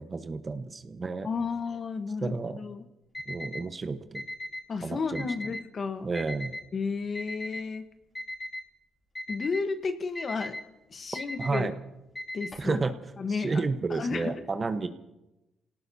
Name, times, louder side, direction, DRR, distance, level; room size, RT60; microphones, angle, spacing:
voice 1, 0.0-1.3 2.2-2.6 3.3-4.2 4.8-5.3 6.0-6.5 11.4-11.7 12.6-13.0 13.3-14.9, right 3 dB, 30° right, 9 dB, 1.1 m, -31 dB
voice 2, 1.2-2.8 4.7-6.1 6.7-7.9 9.3-10.6 10.9-11.7 12.3-12.8 13.2-13.6 13.9-14.4, left 4 dB, 45° left, 8 dB, 1.2 m, -32 dB
Alarm, 3.1-3.6 4.1-4.6 5.1-5.6 6.2-6.6 7.2-7.6 8.2-8.6 9.2-9.6 10.2-10.6 11.2-11.6 12.2-12.7, left 1 dB, 20° left, 3.1 m, -37 dB
28.5 x 18.0 x 2.8 m, 0.97 s
cardioid pair, 90°, 0 cm